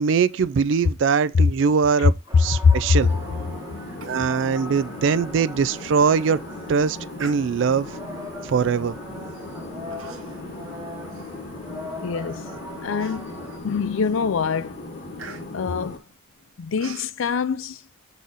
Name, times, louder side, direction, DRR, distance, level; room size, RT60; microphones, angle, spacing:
voice 1, 0.0-2.1 2.4-3.1 4.1-6.4 6.7-7.9 8.5-9.0, right 5 dB, 65° right, 0.3 m, -21 dB
sound 1, 2.3-13.6, equal, 15° right, 0.9 m, -40 dB
voice 2, 2.5-3.0 12.0-14.9 15.5-16.0 16.6-17.8, left 5 dB, 80° left, 0.4 m, -23 dB
sound 2, 3.0-16.0, left 2 dB, 40° left, 1.1 m, -38 dB
Human voice, 4.0-4.3 4.6-4.7 5.3-5.4 5.9-6.2 7.1-7.9 8.6-8.9 9.9-10.5 10.9-11.9 12.4-12.5 13.0-13.5 14.0-14.3 14.5-17.1, right 5 dB, 85° right, 1.0 m, -43 dB
6.2 x 4.1 x 4.0 m
head